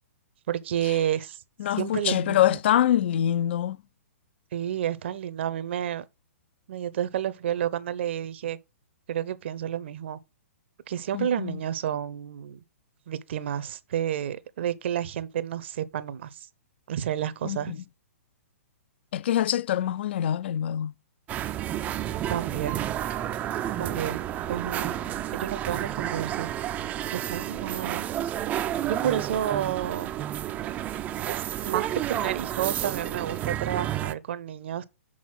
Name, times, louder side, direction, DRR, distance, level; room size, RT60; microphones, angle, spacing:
voice 1, 0.5-1.4 1.8-2.6 4.5-6.0 6.7-8.6 9.1-10.2 10.9-12.6 13.1-16.3 16.9-17.8 22.3-22.9 23.8-26.5 27.1-28.1 28.8-30.1 31.3-34.8, right 10 dB, 50° right, 0.7 m, -30 dB
voice 2, 1.6-3.8 11.1-11.6 17.4-17.8 19.1-20.9, left 11 dB, 50° left, 0.4 m, -25 dB
sound 1, 21.3-34.1, right 12 dB, 20° right, 0.4 m, -31 dB
6.2 x 4.1 x 6.0 m
figure-of-eight pair, 115°, 8 cm